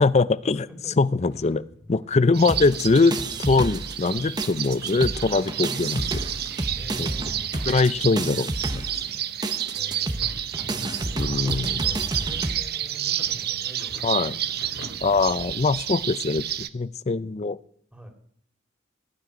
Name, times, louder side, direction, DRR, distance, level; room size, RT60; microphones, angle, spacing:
voice 1, 0.0-0.7 1.0-1.6 1.9-3.1 3.4-6.2 7.0-7.1 7.7-8.9 11.2-11.8 14.0-14.4 15.0-17.6, left 3 dB, 35° left, 18 dB, 0.5 m, -22 dB
voice 2, 0.5-1.0 2.7-2.8 4.1-4.3 6.7-7.4 9.7-10.4 11.0-14.0 14.6-14.8 15.9-16.0 17.9-18.1, equal, 5° right, 4 dB, 2.9 m, -44 dB
sound 1, 1.3-2.2 2.5-2.7 2.9-4.0 4.5-7.0 7.5-8.3 9.0-9.1 9.9-11.9 12.4-15.2, equal, 60° left, 2.6 m, -45 dB
sound 2, 2.3-16.7, right 11 dB, 55° right, 0.7 m, -30 dB
sound 3, 2.5-4.1 4.4-12.6, right 2 dB, 20° right, 0.9 m, -31 dB
16.5 x 6.6 x 10.0 m, 0.65 s
head